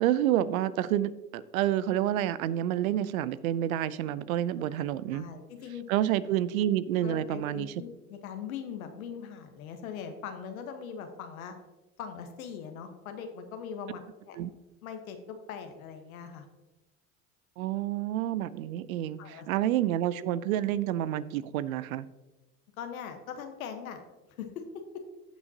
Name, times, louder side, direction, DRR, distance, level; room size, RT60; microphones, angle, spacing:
voice 1, 0.0-5.3 5.9-7.7 14.4-14.5 17.6-22.1, right 12 dB, 85° right, 17 dB, 0.6 m, -29 dB
voice 2, 4.7-5.8 7.0-11.5 12.0-14.4 14.8-16.5 19.2-19.7 22.8-24.0 24.4-24.6, left 7 dB, 85° left, 6 dB, 1.2 m, -41 dB
15.0 x 6.0 x 2.8 m, 1.1 s
hypercardioid pair, 75°, 41 cm